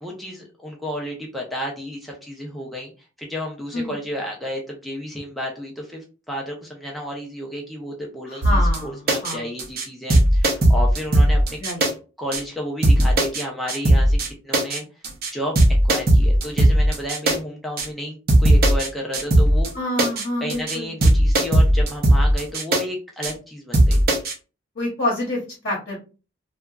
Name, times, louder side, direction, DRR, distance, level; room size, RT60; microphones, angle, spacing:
voice 1, 0.0-2.9 3.2-11.6 12.2-14.2 14.4-14.8 15.3-15.5 15.8-19.7 20.4-24.0, equal, ahead, -2 dB, 0.5 m, -32 dB
voice 2, 8.3-9.5 11.6-11.9 19.7-20.9 24.8-26.0, left 1 dB, 55° left, -4 dB, 0.9 m, -27 dB
sound 1, 8.4-8.8 9.1-9.3 9.6-9.8 10.1-11.9 12.3-12.4 12.8-13.4 13.7-14.3 14.5-14.8 15.0-15.3 15.6-17.4 17.8-17.9 18.3-18.9 19.1-19.7 20.0-20.2 20.5-20.8 21.0-22.8 23.2-23.3 23.7-24.3, right 1 dB, 50° right, 0.6 m, -17 dB
2.8 x 2.2 x 2.3 m, 0.33 s
head